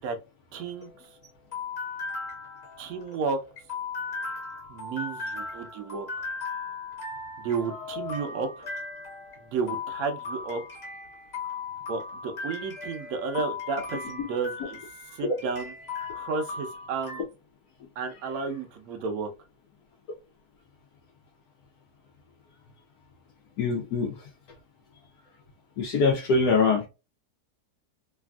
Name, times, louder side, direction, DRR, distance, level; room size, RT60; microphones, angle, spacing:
sound 1, 0.5-17.2, left 4 dB, 45° left, 1.4 m, -37 dB
voice 1, 0.5-0.9 2.8-3.4 4.7-6.1 7.4-8.7 9.5-10.6 11.4-11.6 11.9-14.8 15.1-15.7 16.1-17.2 18.0-19.3, right 5 dB, 70° right, 1.1 m, -32 dB
voice 2, 23.6-24.1 25.8-26.8, left 4 dB, 85° left, 1.2 m, -23 dB
3.4 x 2.4 x 2.2 m
omnidirectional pair, 1.6 m